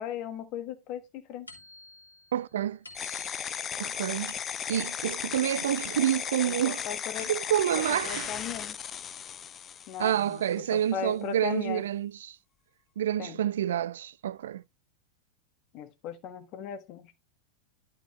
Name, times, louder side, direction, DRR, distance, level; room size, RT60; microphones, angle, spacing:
voice 1, 0.0-1.5 6.5-7.3 7.9-8.8 9.9-11.8 13.2-13.4 15.7-17.1, left 8 dB, 40° left, 1.5 m, -37 dB
sound 1, 1.5-6.5 6.9-7.8, left 2 dB, 80° left, 1.9 m, -53 dB
voice 2, 2.3-2.8 3.8-4.3 4.7-6.8 7.2-8.3 10.0-12.4 13.0-14.6, right 11 dB, 60° right, 0.3 m, -28 dB
sound 2, 3.0-10.5, left 8 dB, 25° left, 0.6 m, -36 dB
11.5 x 5.2 x 3.1 m
figure-of-eight pair, 90°, 0 cm